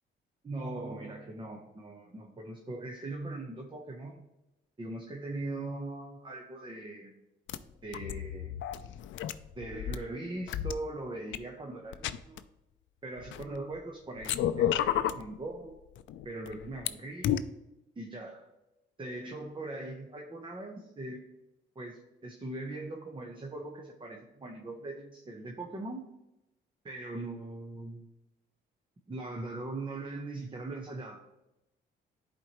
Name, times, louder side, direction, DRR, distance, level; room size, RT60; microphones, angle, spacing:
voice 1, 0.4-4.2 4.8-7.2 7.8-8.6 9.5-12.4 13.0-15.7 16.2-17.3 18.0-18.5 19.0-21.2 21.7-26.1 26.8-28.0 29.1-31.2, right 2 dB, 25° right, 1 dB, 1.0 m, -40 dB
sound 1, 7.5-7.6 7.9-10.0 10.5-10.7 11.3-11.4 11.9-12.4 13.2-13.8 14.2-15.2 16.0-16.9 17.2-17.4, left 11 dB, 70° left, 0.4 m, -31 dB
10.5 x 4.4 x 3.1 m, 0.92 s
cardioid pair, 90°, 20 cm